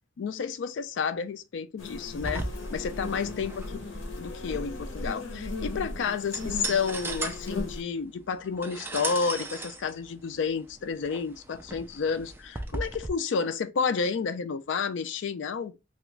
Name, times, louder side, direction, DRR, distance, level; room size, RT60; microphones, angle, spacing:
voice 1, 0.2-2.4 2.7-3.8 4.2-15.8, left 5 dB, 75° left, 0.4 m, -31 dB
sound 1, 1.8-7.8, left 2 dB, 90° left, 0.8 m, -36 dB
sound 2, 2.2-13.1, right 2 dB, 10° right, 0.3 m, -38 dB
2.9 x 2.3 x 3.2 m
head